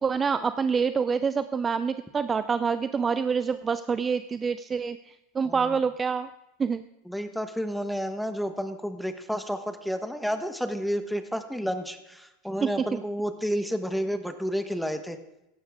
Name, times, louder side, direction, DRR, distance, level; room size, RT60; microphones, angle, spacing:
voice 1, 0.0-6.3 6.6-6.9 12.6-13.0, right 5 dB, 20° right, 12 dB, 0.5 m, -27 dB
voice 2, 5.4-5.8 7.1-15.2, equal, ahead, 8 dB, 1.3 m, -31 dB
16.5 x 13.0 x 3.7 m, 0.95 s
supercardioid pair, 120°, 0 cm